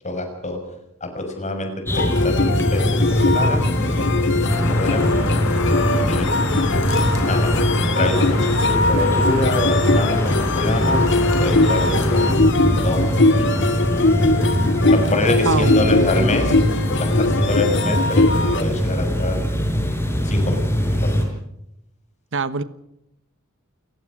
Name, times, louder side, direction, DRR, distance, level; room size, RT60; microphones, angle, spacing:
voice 1, 0.0-0.6 1.0-1.7 2.0-5.1 6.1-6.3 7.2-7.5 7.9-12.3 12.8-13.9 14.9-16.5 17.0-19.4 20.2-21.2, left 2 dB, 35° left, 5 dB, 6.2 m, -26 dB
sound 1, 1.9-18.6, left 2 dB, 60° left, 2.2 m, -21 dB
sound 2, 1.9-21.2, equal, 10° left, 6.1 m, -22 dB
sound 3, 4.5-12.3, left 2 dB, 80° left, 5.2 m, -28 dB
voice 2, 15.4-16.3 22.3-22.6, right 4 dB, 60° right, 14 dB, 1.2 m, -24 dB
29.5 x 16.5 x 6.2 m, 0.80 s
head